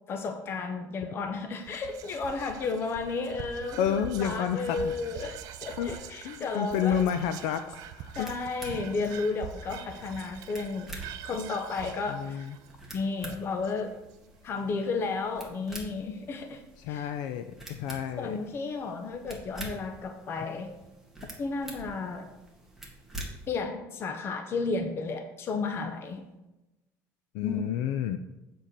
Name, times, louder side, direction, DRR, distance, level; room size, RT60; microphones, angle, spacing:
voice 1, 0.1-7.0 8.2-10.9 11.2-12.5 12.9-13.9 14.4-16.6 16.9-17.1 18.2-20.7 21.4-22.3 23.5-26.2 27.4-27.7, left 4 dB, 35° left, 6 dB, 0.8 m, -33 dB
Whispering, 1.6-14.1, right 8 dB, 60° right, 0.7 m, -44 dB
voice 2, 3.7-4.9 5.8-6.0 6.2-8.3 9.0-9.1 10.2-10.3 12.1-12.6 16.8-18.4 27.3-28.2, left 9 dB, 80° left, 9 dB, 0.5 m, -30 dB
sound 1, 7.7-23.6, right 1 dB, 5° right, 1.8 m, -47 dB
7.5 x 4.5 x 6.7 m, 1.0 s
cardioid pair, 140°, 7 cm